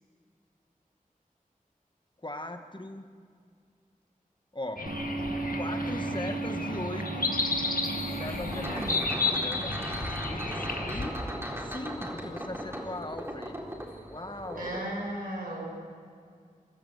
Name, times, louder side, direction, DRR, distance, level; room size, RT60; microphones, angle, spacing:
voice 1, 2.2-3.0 4.5-4.8 5.5-7.4 8.1-11.2 11.6-13.6 14.1-14.8, left 1 dB, 35° left, 6 dB, 1.8 m, -39 dB
sound 1, 4.8-11.1, left 3 dB, 75° left, 2.1 m, -32 dB
sound 2, 4.9-11.2, right 3 dB, 60° right, 1.9 m, -37 dB
sound 3, 7.8-14.8, equal, 15° right, 4.0 m, -38 dB
voice 2, 14.6-15.6, right 1 dB, 90° right, -2 dB, 7.0 m, -35 dB
28.5 x 13.5 x 8.4 m, 2.2 s
wide cardioid pair, 50°, 15 cm